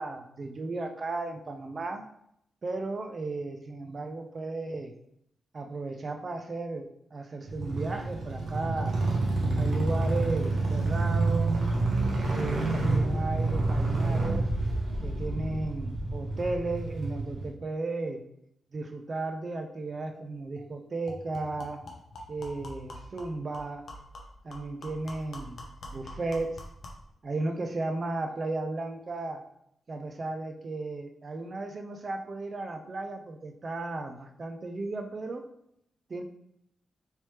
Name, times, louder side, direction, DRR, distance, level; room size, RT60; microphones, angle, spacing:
voice 1, 0.0-2.0 2.6-4.9 5.5-9.0 9.6-11.6 12.3-14.5 15.0-18.2 18.7-21.8 22.3-23.9 24.4-26.6 27.2-29.4 29.9-35.4 36.1-36.2, right 2 dB, 35° right, 6 dB, 0.3 m, -35 dB
sound 1, 7.5-17.5, right 2 dB, 70° right, 0.8 m, -28 dB
sound 2, 20.1-20.2 20.6-20.7 21.1-27.1, left 1 dB, 50° left, 0.6 m, -45 dB
3.2 x 3.1 x 2.8 m, 0.75 s
wide cardioid pair, 170°, 0 cm